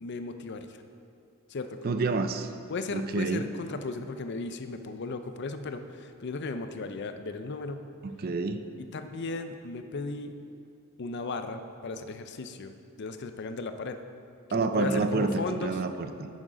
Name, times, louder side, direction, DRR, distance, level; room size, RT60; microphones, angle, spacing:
voice 1, 0.0-0.8 1.5-2.2 2.7-7.8 8.9-10.4 11.0-14.0 14.5-15.7, left 3 dB, 50° left, 8 dB, 0.5 m, -36 dB
voice 2, 1.8-2.5 2.9-3.4 8.2-8.6 14.5-16.3, right 3 dB, 45° right, 9 dB, 0.4 m, -28 dB
8.9 x 6.3 x 5.0 m, 2.5 s
head